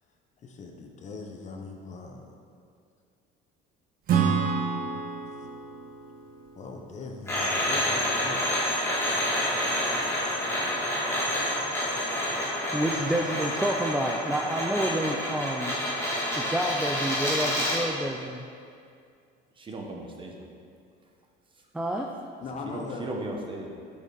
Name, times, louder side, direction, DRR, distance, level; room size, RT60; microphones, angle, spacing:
voice 1, 0.4-2.4 6.6-8.6 22.4-23.1, left 4 dB, 35° left, 3 dB, 0.9 m, -40 dB
Acoustic guitar / Strum, 4.1-7.7, right 6 dB, 45° right, 0.8 m, -29 dB
sound 1, 7.3-17.9, left 1 dB, 10° left, 2.1 m, -28 dB
voice 2, 12.7-15.8 16.3-18.4 21.7-22.1, right 1 dB, 5° right, 1 dB, 0.4 m, -29 dB
voice 3, 19.5-20.4 21.5-21.7 22.6-23.7, right 2 dB, 25° right, 1 dB, 1.1 m, -37 dB
8.6 x 6.6 x 3.9 m, 2.3 s
cardioid pair, 130°, 21 cm